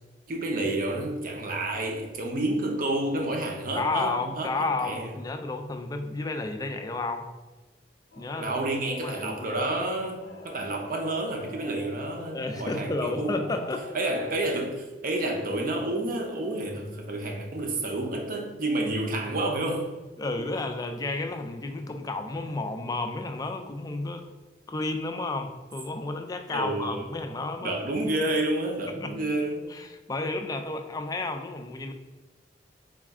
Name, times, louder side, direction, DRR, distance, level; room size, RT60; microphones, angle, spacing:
voice 1, 0.3-4.5 4.8-5.1 8.4-13.5 13.9-19.9 26.5-27.1 27.6-29.7, right 2 dB, 50° right, 2 dB, 0.6 m, -29 dB
voice 2, 3.7-7.3 8.2-8.6 9.0-9.7 10.3-10.8 12.3-13.8 20.2-24.3 24.7-27.8 29.0-29.1 29.7-31.9, left 2 dB, 20° left, 5 dB, 0.3 m, -32 dB
Singing / Musical instrument, 8.1-14.5, left 2 dB, 80° left, 0.5 m, -45 dB
4.0 x 2.4 x 3.5 m, 1.2 s
head